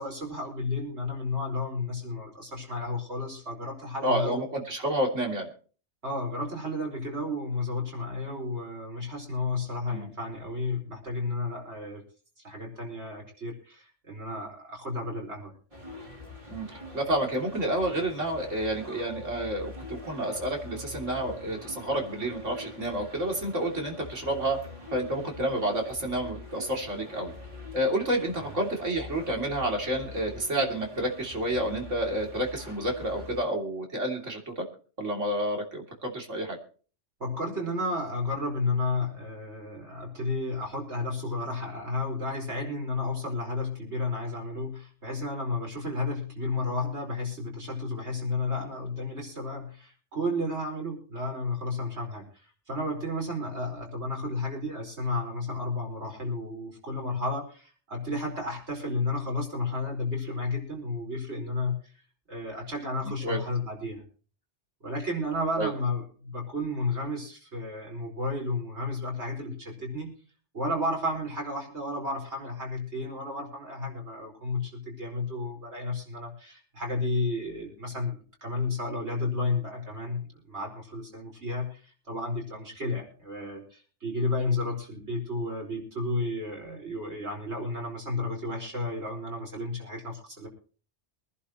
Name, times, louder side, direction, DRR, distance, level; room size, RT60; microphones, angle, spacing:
voice 1, 0.0-4.4 6.0-12.0 12.4-15.5 28.3-28.5 37.2-61.8 62.3-64.0 64.8-70.1 70.5-90.5, left 2 dB, 65° right, 0 dB, 5.2 m, -32 dB
voice 2, 4.0-5.5 9.9-10.1 16.5-24.6 24.9-27.3 27.7-34.7 35.0-36.6 63.2-63.4 65.6-65.7, right 1 dB, 90° right, 1 dB, 3.4 m, -29 dB
sound 1, 15.7-33.4, left 3 dB, 40° right, 2.9 m, -44 dB
24.0 x 11.0 x 3.1 m, 0.39 s
omnidirectional pair, 1.2 m